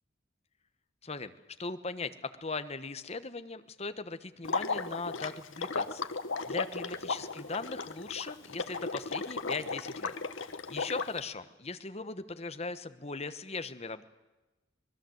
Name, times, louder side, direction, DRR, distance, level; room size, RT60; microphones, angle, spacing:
voice 1, 1.6-6.0 6.4-10.1 10.4-14.0, left 3 dB, 30° left, 11 dB, 1.1 m, -39 dB
Water / Liquid, 4.4-11.2, left 4 dB, 80° left, 1.2 m, -35 dB
25.0 x 20.5 x 7.9 m, 1.1 s
head